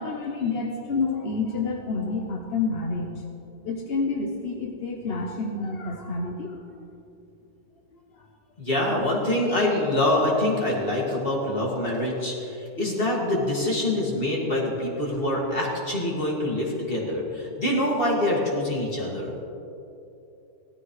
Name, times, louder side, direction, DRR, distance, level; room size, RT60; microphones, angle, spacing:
voice 1, 0.0-3.2 3.6-6.6, left 3 dB, 45° left, 1 dB, 0.8 m, -28 dB
voice 2, 8.6-19.3, left 1 dB, 30° left, -3 dB, 2.4 m, -25 dB
17.0 x 13.0 x 3.2 m, 2.8 s
omnidirectional pair, 1.9 m